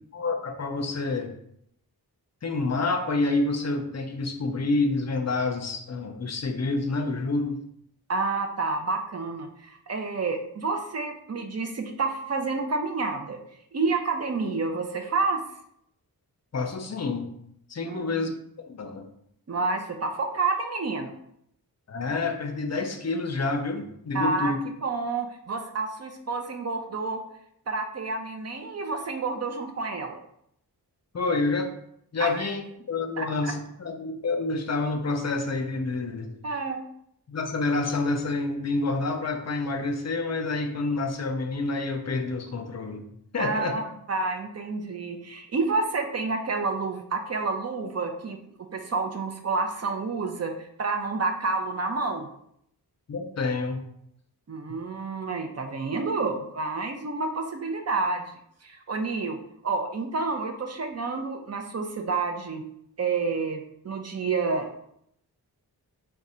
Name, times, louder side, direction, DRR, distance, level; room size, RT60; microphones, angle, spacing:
voice 1, 0.1-1.3 2.4-7.6 16.5-17.3 17.7-18.3 18.7-19.1 21.9-24.6 31.1-31.7 32.1-32.6 32.9-36.3 37.3-43.8 53.1-53.8, left 3 dB, 45° left, 5 dB, 0.6 m, -28 dB
voice 2, 8.1-13.4 13.7-15.4 17.8-18.1 19.5-21.1 24.1-24.5 24.8-27.2 27.7-30.2 32.2-32.5 33.2-33.5 36.4-36.9 43.4-48.4 48.7-52.3 54.5-58.3 58.6-62.6 63.0-64.7, right 3 dB, 40° right, 5 dB, 0.6 m, -29 dB
3.5 x 2.5 x 4.2 m, 0.72 s
wide cardioid pair, 90°, 38 cm